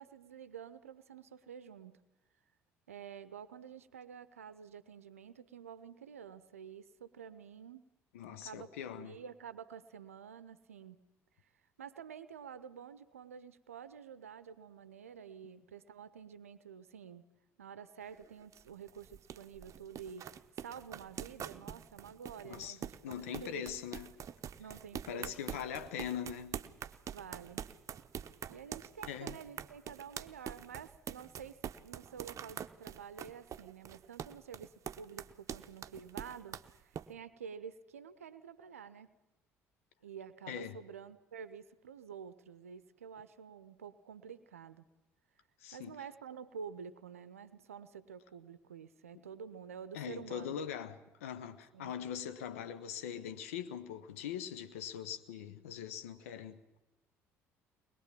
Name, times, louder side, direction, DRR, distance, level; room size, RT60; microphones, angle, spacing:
voice 1, 0.0-2.0 2.9-7.8 8.3-8.7 8.9-11.0 11.8-17.2 17.6-20.3 20.5-23.7 24.6-25.6 27.1-27.7 28.5-39.1 40.0-44.8 45.7-50.6 51.7-51.9, right 7 dB, 85° right, 0.6 m, -49 dB
voice 2, 8.1-9.2 22.4-22.8 23.0-24.1 25.1-26.6 29.1-29.4 40.5-40.8 45.6-45.9 49.9-56.8, left 9 dB, 75° left, 0.9 m, -42 dB
sound 1, 18.0-37.1, right 9 dB, 45° right, 0.7 m, -45 dB
22.0 x 21.0 x 7.4 m
figure-of-eight pair, 55°, 7 cm